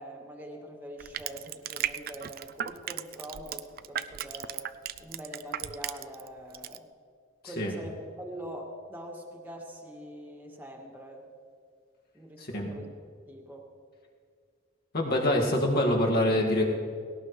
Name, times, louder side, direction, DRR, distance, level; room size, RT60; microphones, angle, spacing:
voice 1, 0.0-4.7 5.0-6.9 7.4-11.2 12.1-12.9 13.3-13.7, equal, 10° right, 0 dB, 1.9 m, -43 dB
Crushing, 1.0-6.3 6.5-6.8, right 10 dB, 50° right, 0.4 m, -35 dB
voice 2, 12.4-12.7 14.9-16.6, left 1 dB, 50° left, -1 dB, 2.0 m, -25 dB
19.0 x 17.5 x 3.2 m, 2.2 s
head